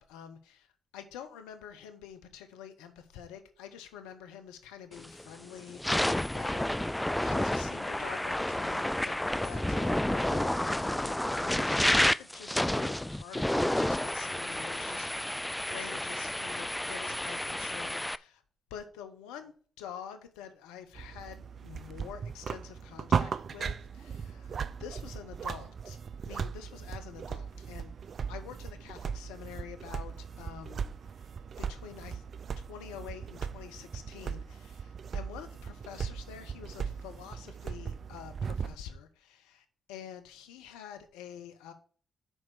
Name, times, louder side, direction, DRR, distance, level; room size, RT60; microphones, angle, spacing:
voice 1, 0.0-18.4 18.7-26.0 26.3-27.9 28.3-30.9 31.6-32.2 32.6-41.7, left 9 dB, 85° left, 0.8 m, -47 dB
sound 1, 5.0-5.2 5.7-18.2, left 1 dB, 10° left, 0.4 m, -30 dB
sound 2, 20.9-38.8, right 6 dB, 60° right, 0.4 m, -37 dB
6.3 x 4.4 x 6.4 m
hypercardioid pair, 40°, 0 cm